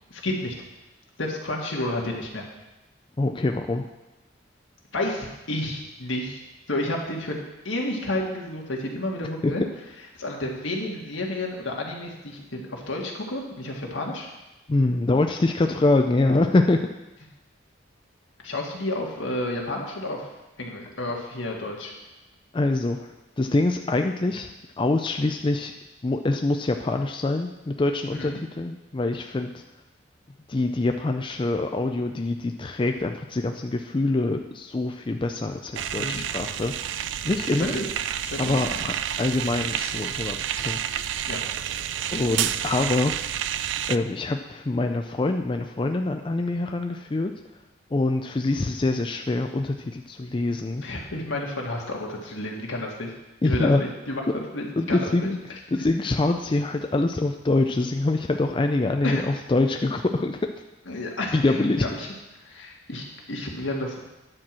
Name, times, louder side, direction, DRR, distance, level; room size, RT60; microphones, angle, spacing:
voice 1, 0.1-0.5 1.2-2.4 4.9-6.4 6.7-7.4 7.6-9.6 10.2-14.3 18.4-20.3 20.6-21.9 28.1-28.4 35.9-36.2 37.6-37.9 38.2-38.8 41.3-41.4 50.8-53.1 53.4-55.1 59.0-59.3 60.9-62.1 62.4-64.0, left 1 dB, 80° left, -1 dB, 1.9 m, -31 dB
voice 2, 3.2-3.8 9.4-9.5 14.7-16.9 22.5-24.5 24.8-25.7 26.0-29.6 30.5-37.7 38.4-40.8 42.1-43.2 43.9-47.3 47.9-50.8 53.4-53.8 54.8-55.4 55.7-60.4 61.3-61.9, left 2 dB, 25° left, 4 dB, 0.4 m, -25 dB
sound 1, 35.8-44.0, right 10 dB, 70° right, 0.4 m, -29 dB
9.9 x 4.6 x 7.5 m, 1.0 s
head